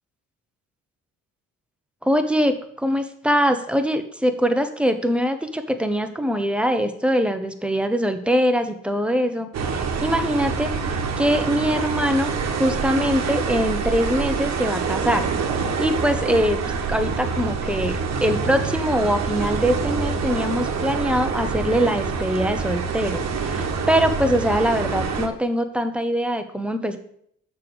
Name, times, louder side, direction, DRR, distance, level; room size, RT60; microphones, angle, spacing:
voice 1, 2.0-15.2 15.8-27.0, equal, 5° right, 7 dB, 1.0 m, -23 dB
sound 1, 9.5-25.3, right 5 dB, 60° right, 1.2 m, -26 dB
6.7 x 5.4 x 6.9 m, 0.67 s
cardioid pair, 90°, 30 cm